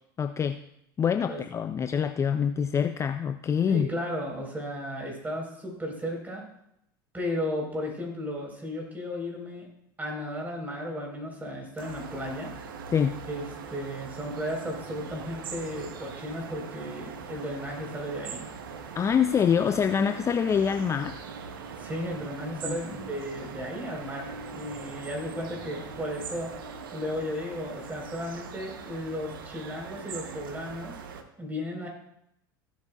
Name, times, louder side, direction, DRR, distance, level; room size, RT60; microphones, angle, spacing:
voice 1, 0.2-0.6 1.0-3.9 12.9-13.2 18.9-21.2 22.6-22.8, left 7 dB, 25° left, 9 dB, 0.4 m, -25 dB
voice 2, 3.7-6.4 7.1-9.7 10.0-12.5 13.3-13.4 13.7-18.4 21.8-26.5 26.9-31.0 31.4-31.9, equal, 15° right, 0 dB, 4.4 m, -34 dB
sound 1, 11.8-31.2, right 5 dB, 85° right, 1.0 m, -41 dB
16.0 x 8.3 x 2.4 m, 0.77 s
hypercardioid pair, 85°, 11 cm